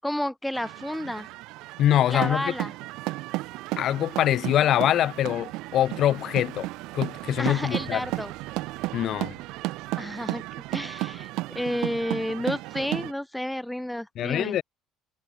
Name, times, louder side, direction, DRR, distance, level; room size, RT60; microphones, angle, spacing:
voice 1, 0.0-1.3 2.1-2.7 7.4-8.3 10.0-10.4 10.7-14.6, left 1 dB, 5° left, 0.4 m, -31 dB
sound 1, 0.5-13.1, right 20 dB, 75° right, 1.1 m, -34 dB
voice 2, 1.8-2.5 3.8-6.7 6.9-8.0 8.9-9.3 14.2-14.6, left 12 dB, 55° left, 0.7 m, -24 dB
supercardioid pair, 90°, 0 cm